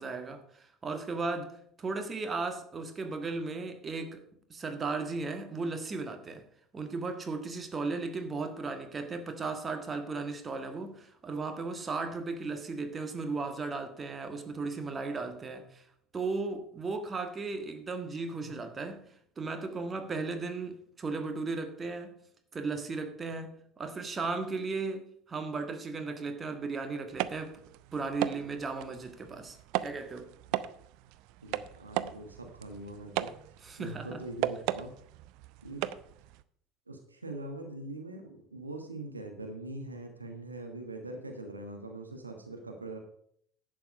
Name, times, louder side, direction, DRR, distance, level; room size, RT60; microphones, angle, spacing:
voice 1, 0.0-4.2 4.5-6.5 6.7-15.8 16.1-19.1 19.4-22.2 22.5-27.6 27.9-30.3 33.6-34.2, right 3 dB, 25° right, 1.6 m, -36 dB
sound 1, 27.1-36.4, right 14 dB, 55° right, 0.5 m, -37 dB
voice 2, 31.4-33.3 33.8-34.9 35.6-35.9 36.9-43.0, right 2 dB, 85° right, 1.3 m, -42 dB
11.0 x 7.7 x 5.2 m
figure-of-eight pair, 65°, 0 cm